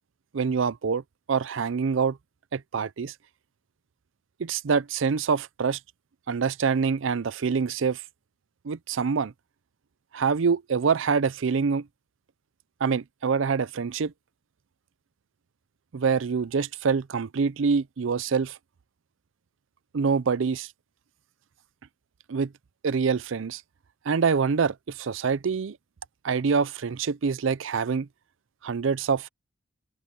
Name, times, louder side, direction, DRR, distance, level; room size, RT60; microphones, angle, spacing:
voice 1, 0.3-1.0 1.3-2.2 2.5-3.1 4.4-5.8 6.3-8.0 8.6-9.3 10.1-11.9 12.8-14.1 15.9-18.6 19.9-20.7 22.3-22.5 22.8-23.6 24.1-25.8 26.2-28.1 28.6-29.3, right 5 dB, 75° right, 0.5 m, -25 dB
open air
head